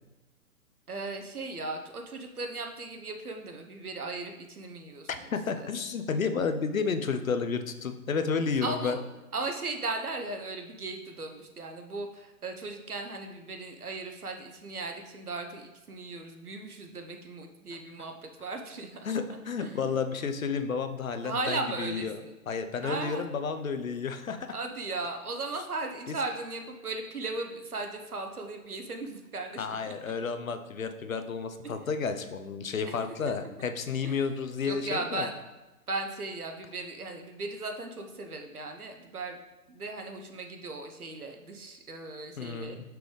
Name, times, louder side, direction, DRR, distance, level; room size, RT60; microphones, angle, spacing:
voice 1, 0.9-5.3 5.5-5.7 8.6-9.0 9.3-19.0 19.6-19.9 21.2-22.3 22.8-23.3 24.5-30.1 31.6-31.7 32.9-33.0 33.3-33.7 34.0-34.2 34.7-35.3 35.9-39.4 39.7-42.9, right 3 dB, 80° right, 4 dB, 0.9 m, -37 dB
voice 2, 5.1-9.0 19.0-22.2 22.5-24.5 26.1-26.2 29.6-35.3 42.4-42.9, left 5 dB, 65° left, 9 dB, 0.7 m, -31 dB
6.0 x 5.2 x 3.2 m, 1.1 s
figure-of-eight pair, 130°, 44 cm